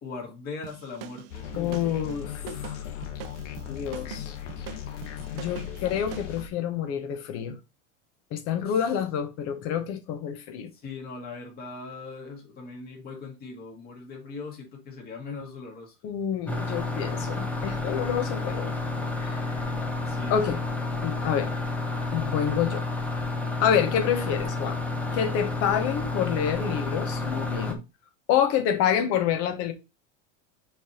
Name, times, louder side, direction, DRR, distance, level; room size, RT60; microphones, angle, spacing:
voice 1, 0.0-2.0 8.7-8.8 10.7-16.0 20.1-20.6, left 4 dB, 25° left, 2.1 m, -40 dB
sound 1, 0.6-6.4, right 13 dB, 50° right, 0.7 m, -43 dB
sound 2, 1.3-6.5, left 10 dB, 90° left, 1.2 m, -37 dB
voice 2, 1.6-2.8 3.7-4.3 5.3-7.5 8.3-10.7 16.0-18.8 19.2-19.4 20.3-20.6 21.0-21.5 22.1-22.8 23.6-24.8 25.1-27.8 28.3-29.7, left 9 dB, 40° left, 1.1 m, -27 dB
sound 3, 16.5-27.7, left 3 dB, 5° left, 0.6 m, -30 dB
6.2 x 3.5 x 4.3 m
supercardioid pair, 155°, 36 cm